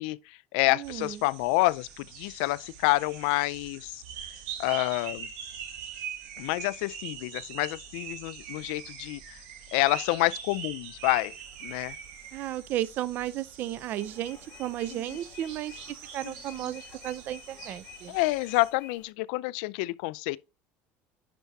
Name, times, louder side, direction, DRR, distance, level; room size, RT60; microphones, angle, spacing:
voice 1, 0.0-4.0 4.6-5.3 6.4-9.2 9.7-11.3 11.6-12.0 18.1-20.4, left 21 dB, 85° left, 0.4 m, -28 dB
voice 2, 0.7-1.2 12.3-18.2, right 13 dB, 40° right, 0.4 m, -34 dB
sound 1, 0.8-18.7, right 8 dB, 80° right, 1.9 m, -43 dB
sound 2, 11.3-19.1, left 10 dB, 35° left, 0.7 m, -51 dB
10.0 x 4.6 x 2.7 m
cardioid pair, 175°, 5 cm